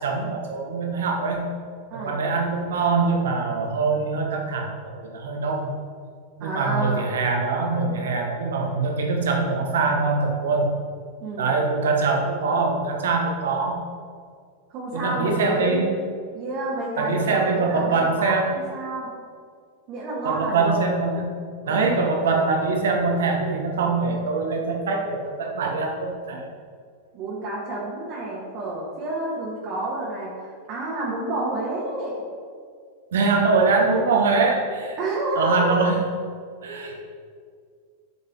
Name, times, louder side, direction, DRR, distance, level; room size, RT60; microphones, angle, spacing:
voice 1, 0.0-1.4 1.9-5.7 6.4-10.7 11.4-13.8 14.9-15.9 17.0-18.5 20.2-21.3 21.7-26.4 33.1-35.0 35.3-36.0 36.6-37.0, right 4 dB, 70° right, 2 dB, 1.3 m, -23 dB
voice 2, 6.4-7.1 11.2-11.6 14.7-15.9 16.3-19.1 19.9-20.8 21.6-22.0 27.1-32.2 35.0-35.8, right 2 dB, 45° right, -6 dB, 1.7 m, -29 dB
9.5 x 5.4 x 3.9 m, 2.1 s
figure-of-eight pair, 95°, 0 cm